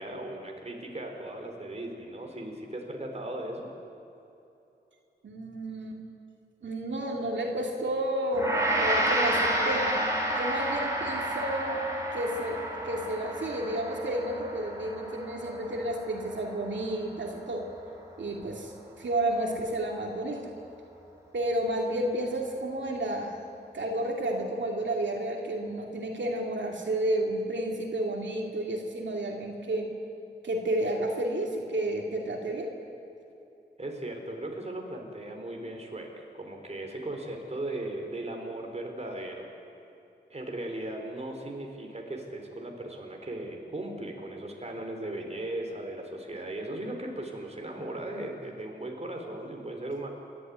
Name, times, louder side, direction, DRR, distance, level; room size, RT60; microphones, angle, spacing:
voice 1, 0.0-3.7 33.8-39.5 40.3-50.1, right 1 dB, 35° right, 2 dB, 3.8 m, -37 dB
voice 2, 5.2-6.0 6.6-9.9 10.4-11.8 12.1-17.6 18.2-18.7 19.0-20.5 21.3-23.4 23.7-29.9 30.4-32.8, right 1 dB, 85° right, 0 dB, 2.6 m, -31 dB
Gong, 8.3-17.7, right 1 dB, 15° right, 4.8 m, -31 dB
29.5 x 12.5 x 9.5 m, 2.9 s
wide cardioid pair, 100°, 18 cm